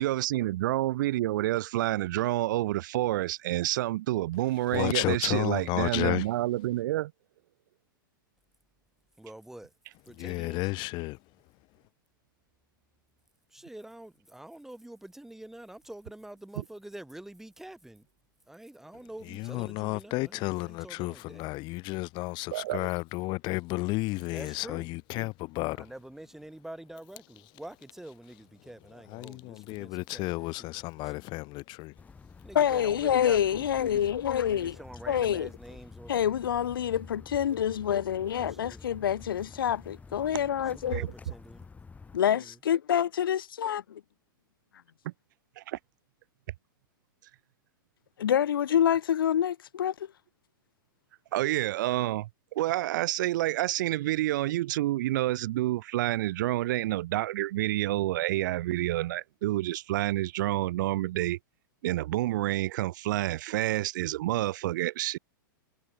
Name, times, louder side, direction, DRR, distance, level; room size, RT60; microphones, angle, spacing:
voice 1, 0.0-7.1 16.5-16.6 22.5-22.9 40.9-41.1 45.0-45.1 45.6-45.8 51.3-61.4 61.8-65.2, right 16 dB, 60° right, 1.3 m, -28 dB
voice 2, 4.7-6.3 10.1-11.2 19.2-25.9 28.6-31.9, left 23 dB, 40° left, 4.3 m, -32 dB
voice 3, 9.2-9.7 10.1-10.6 13.5-18.0 18.5-21.5 24.3-24.9 25.8-30.7 32.4-34.0 34.5-36.3 38.2-38.3 38.6-38.8 40.7-41.6 42.3-42.5, right 1 dB, 5° right, 4.2 m, -46 dB
sound 1, 32.0-42.2, left 4 dB, 15° left, 5.0 m, -49 dB
voice 4, 32.5-34.8 35.1-35.5 36.1-41.0 42.1-43.8 48.2-49.9, left 9 dB, 80° left, 1.1 m, -27 dB
hypercardioid pair, 115°, 11 cm